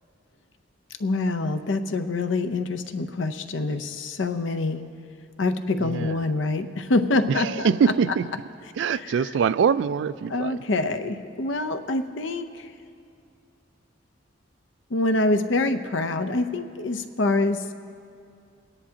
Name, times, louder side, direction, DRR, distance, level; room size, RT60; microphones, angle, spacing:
voice 1, 1.0-4.8 5.4-7.7 10.3-12.7 14.9-17.6, left 2 dB, 70° left, 9 dB, 0.6 m, -25 dB
voice 2, 5.8-6.2 7.3-8.3 8.7-10.6, right 6 dB, 65° right, 16 dB, 0.3 m, -23 dB
22.5 x 9.9 x 2.8 m, 2.4 s
head